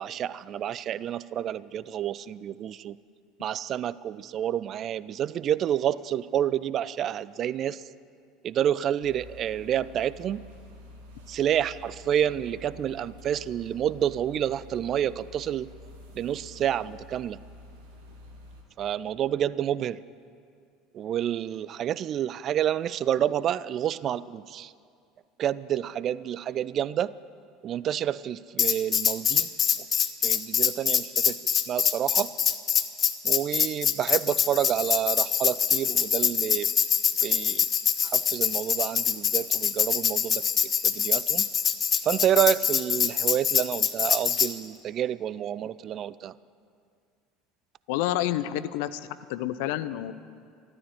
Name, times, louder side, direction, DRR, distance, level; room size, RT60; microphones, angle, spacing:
voice 1, 0.0-3.0 3.4-7.8 8.4-10.5 11.3-15.7 16.2-17.4 18.8-20.0 20.9-24.7 25.4-27.1 27.6-29.5 30.2-32.3 33.2-36.7 37.2-37.7 38.0-40.4 40.8-41.5 42.0-46.3, right 10 dB, 40° right, 19 dB, 0.4 m, -29 dB
sound 1, 9.0-18.6, left 1 dB, 65° right, 2.5 m, -48 dB
Tambourine, 28.6-44.5, left 8 dB, 35° left, 0.9 m, -24 dB
voice 2, 47.9-50.1, left 13 dB, 60° left, 14 dB, 0.6 m, -29 dB
13.5 x 13.0 x 8.0 m, 2.3 s
figure-of-eight pair, 65°, 0 cm